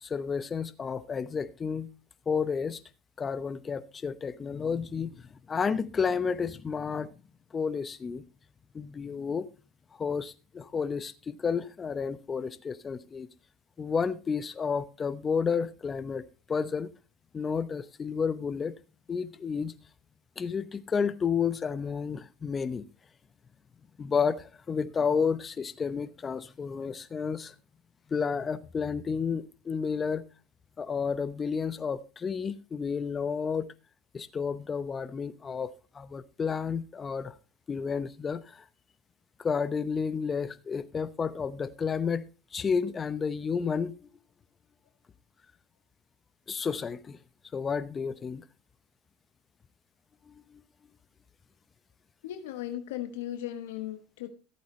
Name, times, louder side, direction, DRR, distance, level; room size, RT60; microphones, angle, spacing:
voice 1, 0.0-1.9 2.3-2.8 3.2-5.1 5.5-7.1 7.5-8.2 8.7-9.5 10.0-13.3 13.8-16.9 17.3-18.8 19.1-19.8 20.4-22.8 24.0-27.5 28.1-30.2 30.8-33.7 34.1-37.3 37.7-38.6 39.4-42.3 42.5-44.0 46.5-47.2 47.5-48.4 50.3-50.4, left 6 dB, 25° left, 0.8 m, -31 dB
voice 2, 52.2-54.3, left 12 dB, 85° left, 1.1 m, -37 dB
14.5 x 8.5 x 3.2 m
supercardioid pair, 105°, 0 cm